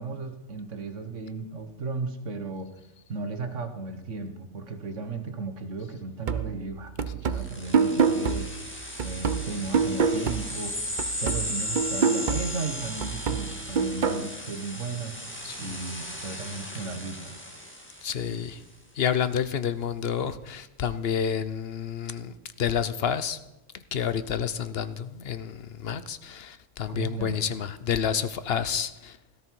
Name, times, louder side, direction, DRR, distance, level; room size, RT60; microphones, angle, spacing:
voice 1, 0.0-2.7 3.1-10.8 11.2-15.2 15.6-17.4 26.9-27.4, right 4 dB, 75° right, 7 dB, 1.7 m, -35 dB
sound 1, 6.3-10.7 11.0-14.3, right 5 dB, 45° right, 0.8 m, -27 dB
sound 2, 7.4-18.5, left 1 dB, 10° left, 1.9 m, -36 dB
voice 2, 18.0-18.6 19.0-23.4 23.7-29.2, left 8 dB, 55° left, 13 dB, 0.9 m, -29 dB
17.5 x 13.5 x 4.6 m, 0.95 s
omnidirectional pair, 1.3 m